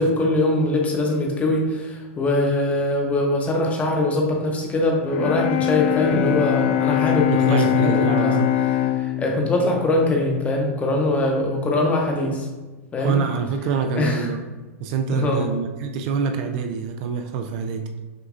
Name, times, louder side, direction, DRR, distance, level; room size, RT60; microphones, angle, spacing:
voice 1, 0.0-8.3 9.0-12.5 12.9-13.2 14.0-14.3 15.1-15.5, left 2 dB, 15° left, 0 dB, 0.8 m, -22 dB
Bowed string instrument, 5.0-11.1, left 12 dB, 60° left, 0.4 m, -23 dB
voice 2, 7.3-8.5 13.0-14.4 14.8-17.9, right 5 dB, 45° right, 5 dB, 0.4 m, -25 dB
6.2 x 2.6 x 2.4 m, 1.2 s
hypercardioid pair, 135°, 8 cm